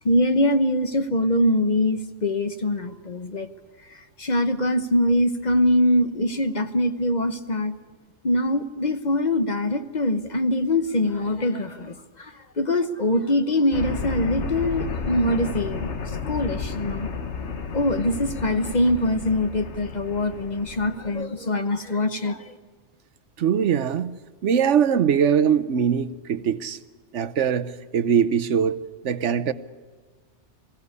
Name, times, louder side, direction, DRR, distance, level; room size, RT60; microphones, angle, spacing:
voice 1, 0.0-3.5 4.2-7.8 8.2-17.1 17.7-22.6, left 1 dB, 40° left, 1.1 m, -23 dB
sound 1, 13.7-21.2, left 4 dB, 70° left, 1.6 m, -32 dB
voice 2, 23.4-24.1 24.4-26.8 27.1-28.8 29.0-29.5, right 8 dB, 75° right, 1.2 m, -22 dB
22.0 x 16.0 x 9.6 m
omnidirectional pair, 1.2 m